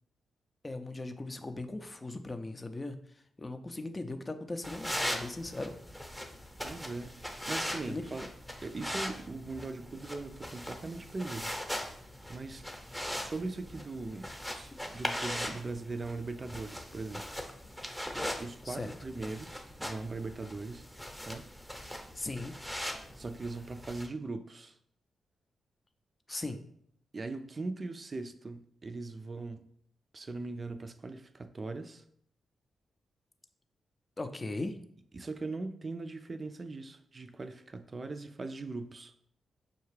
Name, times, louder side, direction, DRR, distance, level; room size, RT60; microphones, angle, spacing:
voice 1, 0.6-5.7 7.9-8.0 18.6-18.9 22.1-22.5 26.3-26.6 34.2-34.8, left 2 dB, 30° left, 8 dB, 0.5 m, -38 dB
sound 1, 4.6-24.1, equal, 5° left, 0.8 m, -40 dB
voice 2, 6.6-7.2 7.5-8.3 8.6-11.5 12.3-12.6 13.2-17.2 18.4-20.8 21.3-21.4 23.1-24.8 27.1-29.6 30.1-32.0 35.1-39.1, right 3 dB, 40° right, 9 dB, 0.4 m, -40 dB
5.3 x 2.3 x 3.2 m, 0.68 s
hypercardioid pair, 40°, 0 cm